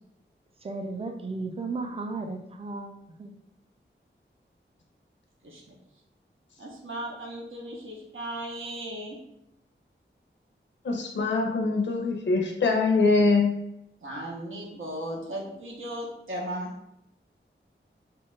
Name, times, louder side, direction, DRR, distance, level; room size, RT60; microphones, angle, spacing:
voice 1, 0.6-3.3, right 3 dB, 30° right, 5 dB, 0.4 m, -35 dB
voice 2, 6.6-9.2 14.0-16.7, right 1 dB, 80° right, -3 dB, 0.6 m, -36 dB
voice 3, 10.8-13.5, left 3 dB, 65° left, 1 dB, 0.4 m, -23 dB
2.8 x 2.2 x 3.1 m, 0.81 s
wide cardioid pair, 75°, 21 cm